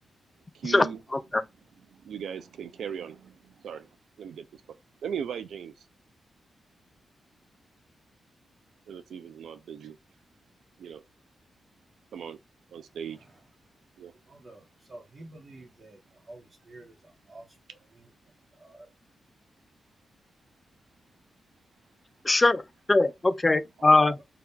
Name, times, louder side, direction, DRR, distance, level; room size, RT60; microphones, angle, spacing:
voice 1, 0.5-1.0 1.9-3.9 4.2-4.6 5.0-5.9 8.9-10.0 10.8-11.0 12.1-12.4 12.7-13.2 14.0-14.1, right 8 dB, 85° right, 0.3 m, -38 dB
voice 2, 1.1-1.4 22.2-22.6 22.9-24.2, left 2 dB, 25° left, 0.4 m, -21 dB
voice 3, 14.3-17.4 17.9-18.1 18.5-18.9, right 2 dB, 40° right, 1.0 m, -49 dB
2.7 x 2.3 x 3.6 m
cardioid pair, 65°, 0 cm